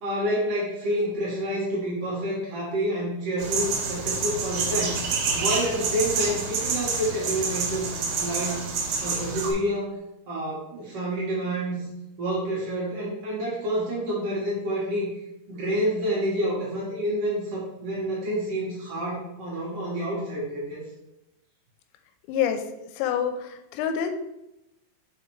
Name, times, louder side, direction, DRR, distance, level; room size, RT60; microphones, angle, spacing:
voice 1, 0.0-7.9 8.2-8.7 9.0-9.9 10.3-11.8 12.2-15.1 15.5-20.8, right 1 dB, 90° right, -6 dB, 1.3 m, -28 dB
sound 1, 3.4-9.5, right 4 dB, 70° right, 2.2 m, -28 dB
voice 2, 22.3-22.7 23.0-24.1, left 8 dB, 85° left, 6 dB, 2.9 m, -26 dB
5.6 x 4.8 x 4.6 m, 0.91 s
omnidirectional pair, 5.2 m